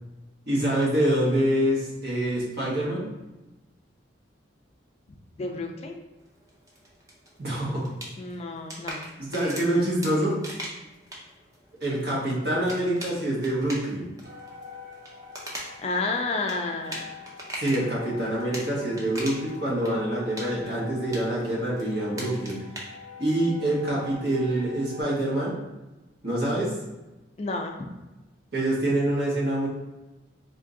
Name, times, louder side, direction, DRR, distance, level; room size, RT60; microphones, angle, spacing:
voice 1, 0.5-3.1 7.4-7.9 9.2-10.4 11.8-14.1 17.6-22.6 23.2-25.5 26.2-26.8 28.5-29.7, right 1 dB, 55° right, -5 dB, 1.3 m, -26 dB
voice 2, 5.4-6.0 8.2-9.1 9.4-9.6 15.8-17.1 27.4-27.8, left 3 dB, 35° left, 3 dB, 0.3 m, -31 dB
sound 1, 6.2-17.9 18.3-19.6 19.8-22.8, right 1 dB, 20° right, 0.6 m, -41 dB
sound 2, 14.2-25.0, left 4 dB, 85° right, 1.1 m, -45 dB
3.6 x 2.5 x 3.7 m, 1.1 s
head